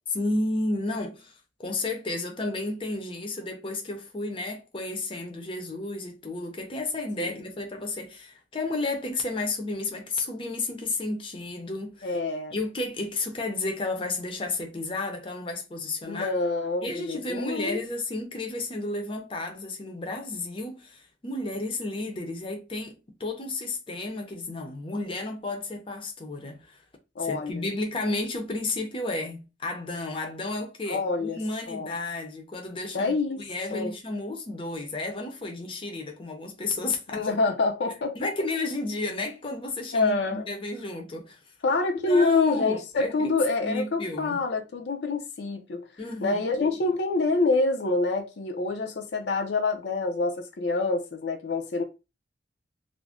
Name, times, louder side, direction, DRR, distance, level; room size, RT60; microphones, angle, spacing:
voice 1, 0.1-1.3 1.6-12.2 12.5-16.3 16.8-26.8 27.2-37.3 38.2-41.4 42.0-43.4 43.6-44.4 46.0-46.8, left 2 dB, 30° left, 0.6 m, -32 dB
voice 2, 12.0-12.5 16.1-17.8 27.2-27.7 30.9-31.4 31.7-31.9 32.9-33.4 33.7-33.9 37.1-38.3 39.9-40.4 41.6-45.9 46.2-51.8, left 3 dB, 75° left, 0.5 m, -26 dB
2.5 x 2.1 x 3.4 m
head